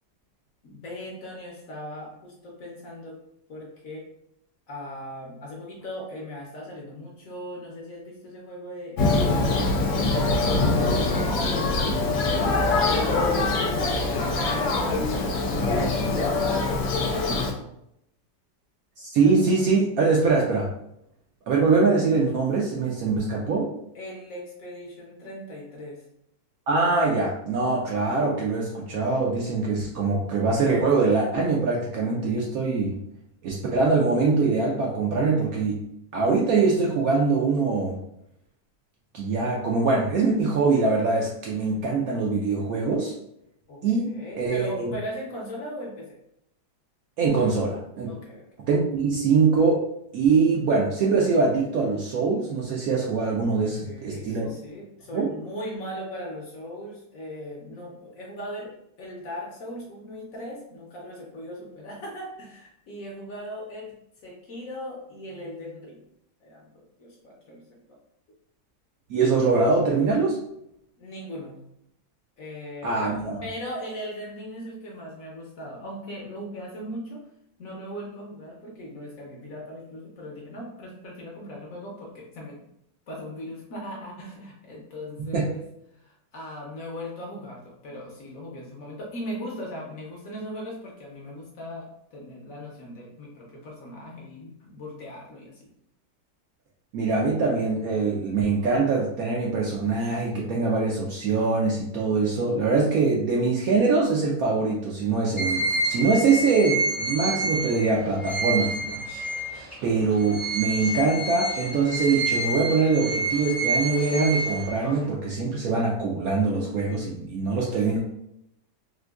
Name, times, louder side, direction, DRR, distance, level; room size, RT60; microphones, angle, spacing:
voice 1, 0.6-3.2 3.5-4.1 4.7-10.3 11.3-17.5 23.9-26.0 43.7-46.1 48.0-48.5 53.8-58.7 59.0-63.9 64.2-66.0 66.4-67.6 71.0-71.6 72.4-77.2 77.6-82.6 83.1-85.6 86.0-95.7 117.7-117.9, equal, 60° left, -3 dB, 1.0 m, -39 dB
Thunder, 9.0-17.5, left 3 dB, 80° left, 1.2 m, -23 dB
voice 2, 19.0-20.7 21.5-23.7 26.7-33.0 33.4-35.8 36.1-37.9 39.1-43.1 43.8-44.1 44.4-44.9 47.2-48.1 48.7-49.8 50.1-54.5 55.1-55.3 69.1-70.4 72.8-73.4 85.3-85.5 96.9-109.2 109.5-118.0, right 4 dB, 70° right, -2 dB, 0.9 m, -23 dB
sound 1, 105.4-109.7 110.2-115.0, right 2 dB, 10° right, 0.7 m, -28 dB
3.7 x 2.6 x 2.3 m, 0.77 s
omnidirectional pair, 1.9 m